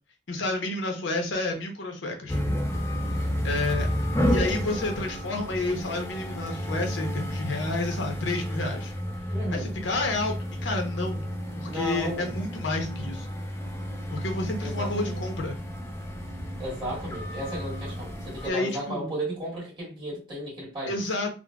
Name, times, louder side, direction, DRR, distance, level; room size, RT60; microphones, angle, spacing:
voice 1, 0.3-2.4 3.4-3.9 4.3-8.9 9.5-10.3 10.6-13.3 14.1-15.6 18.4-19.1 20.9-21.3, left 2 dB, 75° left, 0.8 m, -30 dB
sound 1, 2.3-18.5, equal, 15° left, 0.5 m, -31 dB
voice 2, 9.3-9.7 11.7-12.5 14.6-15.2 16.6-21.0, right 1 dB, 25° right, 1.6 m, -34 dB
3.7 x 2.1 x 2.2 m
head